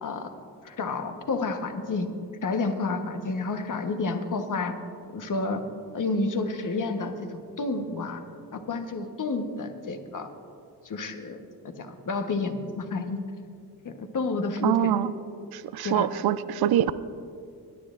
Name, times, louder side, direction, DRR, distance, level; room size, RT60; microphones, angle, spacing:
voice 1, 0.0-0.3 0.6-2.1 2.4-4.8 5.1-5.7 5.9-8.2 8.5-10.3 10.8-13.2 13.8-14.9 15.8-16.1, left 3 dB, 50° left, 6 dB, 1.2 m, -30 dB
voice 2, 14.6-15.1 15.5-16.9, right 11 dB, 65° right, 15 dB, 0.5 m, -24 dB
19.5 x 9.7 x 2.5 m, 2.4 s
supercardioid pair, 55°, 40 cm